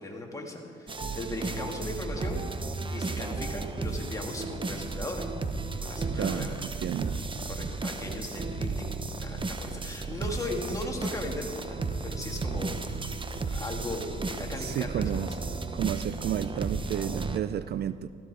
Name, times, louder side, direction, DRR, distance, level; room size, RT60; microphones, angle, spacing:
voice 1, 0.0-5.2 5.8-7.1 7.5-12.9 13.5-15.4, left 2 dB, 15° left, 0 dB, 2.6 m, -38 dB
sound 1, 0.9-17.4, right 3 dB, 25° right, 1.0 m, -34 dB
voice 2, 6.1-7.2 14.6-15.3 15.7-18.1, right 10 dB, 55° right, 14 dB, 0.4 m, -32 dB
15.0 x 15.0 x 5.0 m, 2.4 s
cardioid pair, 90°, 20 cm